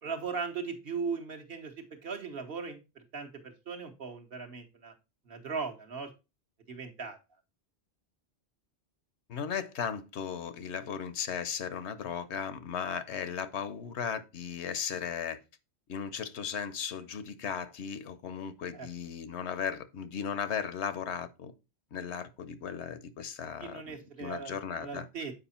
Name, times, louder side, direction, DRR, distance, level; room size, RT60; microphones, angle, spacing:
voice 1, 0.0-4.9 5.3-6.1 6.7-7.2 18.7-18.9 23.6-24.5 24.8-25.3, right 5 dB, 60° right, 1.3 m, -38 dB
voice 2, 9.3-15.4 15.9-21.5 21.9-25.1, left 7 dB, 80° left, 1.0 m, -36 dB
7.9 x 4.8 x 4.3 m
omnidirectional pair, 1.1 m